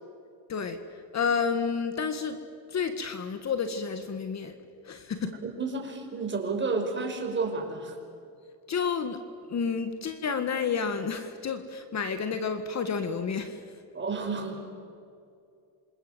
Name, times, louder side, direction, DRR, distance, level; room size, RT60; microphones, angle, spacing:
voice 1, 1.1-2.4 2.7-4.5 4.8-5.3 8.7-9.2 9.5-13.6, left 6 dB, 40° left, 9 dB, 1.8 m, -30 dB
voice 2, 5.4-8.0 13.9-14.6, right 4 dB, 25° right, 3 dB, 5.5 m, -31 dB
28.0 x 26.5 x 8.0 m, 2.5 s
cardioid pair, 115°, 43 cm